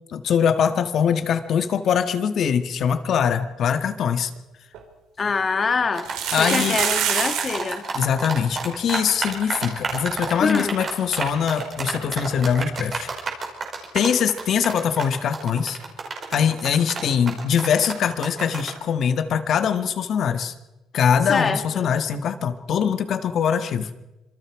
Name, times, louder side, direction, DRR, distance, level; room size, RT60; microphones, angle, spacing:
voice 1, 0.1-4.3 6.3-6.8 7.9-13.1 13.9-15.8 16.3-20.5 20.9-23.9, left 7 dB, 55° left, 9 dB, 1.7 m, -22 dB
sound 1, 4.4-4.5 4.7-4.8 6.0-7.7 8.0-8.1 8.3-8.5 9.1-9.2 9.5-9.6 11.6-11.7, right 9 dB, 80° right, 3.9 m, -25 dB
voice 2, 5.2-6.1 6.4-7.8 10.4-10.8 21.3-21.9, left 4 dB, 30° left, 9 dB, 1.7 m, -24 dB
sound 2, 6.0-18.8, right 4 dB, 35° right, 5.2 m, -30 dB
26.0 x 24.0 x 4.8 m, 0.99 s
cardioid pair, 115°, 0 cm